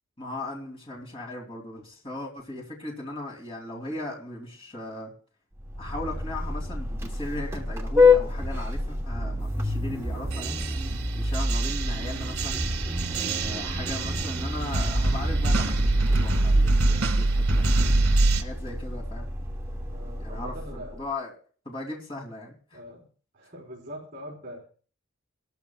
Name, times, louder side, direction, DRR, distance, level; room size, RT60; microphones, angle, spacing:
voice 1, 0.2-5.1 5.8-10.6 11.1-12.6 13.0-18.0 18.4-19.3 20.2-21.3 21.6-22.5, left 2 dB, 25° left, -1 dB, 2.9 m, -38 dB
Vehicle horn car horn honking, 5.6-21.0, left 2 dB, 10° right, 1.2 m, -28 dB
sound 1, 10.3-18.4, right 2 dB, 80° right, 1.9 m, -25 dB
voice 2, 19.9-21.0 22.7-23.0 23.3-24.7, equal, 35° right, -6 dB, 4.2 m, -42 dB
19.5 x 13.0 x 2.4 m, 0.41 s
head